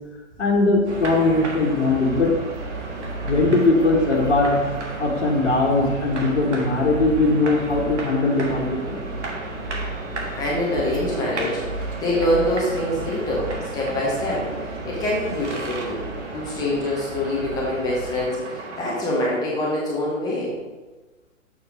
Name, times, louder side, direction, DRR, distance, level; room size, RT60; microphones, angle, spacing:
voice 1, 0.4-2.3 3.3-4.7 5.0-9.2, left 2 dB, 50° left, -4 dB, 1.7 m, -20 dB
sound 1, 0.8-18.2, right 2 dB, 35° right, 1.4 m, -35 dB
sound 2, 0.9-19.0, right 2 dB, 60° right, 1.6 m, -35 dB
voice 2, 10.4-14.5 14.8-16.1 16.3-20.5, left 1 dB, 10° left, -5 dB, 0.9 m, -25 dB
7.1 x 4.6 x 5.0 m, 1.2 s
figure-of-eight pair, 130°, 41 cm